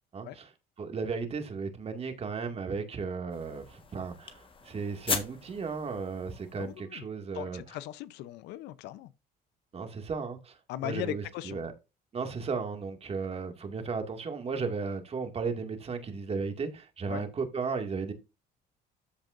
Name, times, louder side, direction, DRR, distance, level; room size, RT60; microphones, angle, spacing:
voice 1, 0.1-0.5 0.8-7.8 9.7-11.7 12.1-18.1, right 5 dB, 35° right, 2.2 m, -35 dB
sound 1, 3.3-6.8, left 5 dB, 30° left, 1.5 m, -38 dB
voice 2, 6.6-7.0 7.3-9.1 10.7-11.6 17.1-17.2, left 14 dB, 85° left, 0.7 m, -38 dB
13.5 x 5.3 x 2.6 m
cardioid pair, 110°, 17 cm